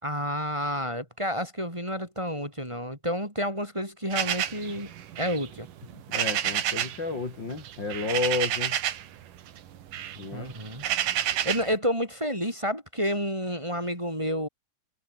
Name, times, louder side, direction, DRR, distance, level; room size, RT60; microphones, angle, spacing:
voice 1, 0.0-5.7 10.3-10.8 11.4-14.5, equal, 10° right, 6.7 m, -30 dB
sound 1, 4.1-7.0 7.3-9.1 9.5-11.7, right 11 dB, 85° right, 3.4 m, -30 dB
voice 2, 6.1-8.8 10.2-10.5, left 3 dB, 35° left, 4.5 m, -31 dB
omnidirectional pair, 3.7 m